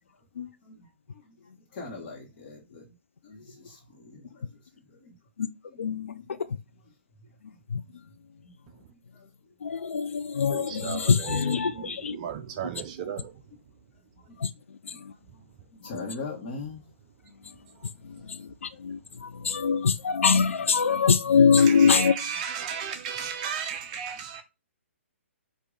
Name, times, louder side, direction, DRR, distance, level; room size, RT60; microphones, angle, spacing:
voice 1, 0.3-2.9 3.2-5.1 5.7-5.9 6.8-6.9 7.2-7.3 8.4-9.3 10.3-10.4 11.8-11.9 14.2-14.3 14.9-15.0 15.3-16.8 18.1-18.8 19.1-19.2 19.9-20.1, left 3 dB, 40° left, 1.3 m, -43 dB
voice 2, 5.8-6.2 7.7-7.8 9.6-12.2 14.4-14.5 18.3-22.1, left 6 dB, 75° left, 0.4 m, -23 dB
voice 3, 10.5-13.4 17.7-17.9 21.6-24.4, right 8 dB, 35° right, 0.5 m, -35 dB
4.7 x 2.6 x 3.8 m
figure-of-eight pair, 130°, 7 cm